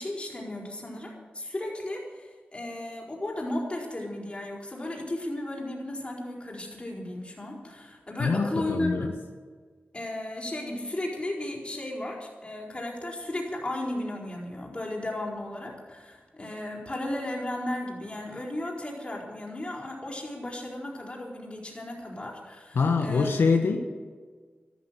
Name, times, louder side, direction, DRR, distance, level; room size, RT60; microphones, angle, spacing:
voice 1, 0.0-9.1 9.9-23.5, left 1 dB, 30° left, -1 dB, 4.6 m, -35 dB
voice 2, 8.2-9.1 22.7-23.8, left 4 dB, 85° left, 4 dB, 1.1 m, -24 dB
13.0 x 13.0 x 7.6 m, 1.5 s
wide cardioid pair, 70°, 4 cm